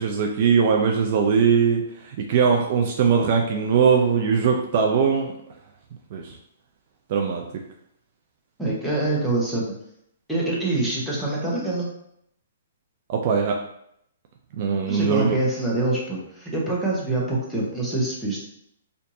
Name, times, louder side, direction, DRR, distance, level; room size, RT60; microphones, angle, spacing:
voice 1, 0.0-5.3 6.1-6.4 7.1-7.6 13.1-13.6 14.6-15.4, right 6 dB, 50° right, 2 dB, 0.5 m, -21 dB
voice 2, 8.6-9.7 10.3-11.9 14.9-18.4, right 2 dB, ahead, -6 dB, 1.0 m, -25 dB
4.4 x 2.6 x 2.7 m, 0.73 s
hypercardioid pair, 145°, 0 cm